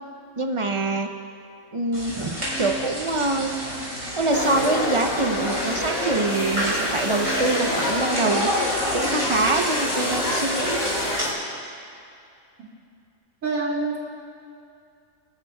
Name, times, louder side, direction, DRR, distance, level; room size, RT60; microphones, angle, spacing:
voice 1, 0.4-1.1 1.7-3.5 4.2-8.5 8.9-10.8, right 2 dB, 30° right, 4 dB, 0.6 m, -25 dB
sound 1, 1.9-11.2, equal, 70° right, 4.6 m, -30 dB
sound 2, 2.4-3.0 3.3-4.9 5.1-9.5 9.9-10.0, right 2 dB, 30° left, 3.5 m, -37 dB
sound 3, 4.3-11.3, left 1 dB, 85° left, 2.7 m, -27 dB
voice 2, 13.4-14.0, right 3 dB, 85° right, -3 dB, 2.7 m, -25 dB
24.0 x 13.5 x 2.3 m, 2.4 s
omnidirectional pair, 1.4 m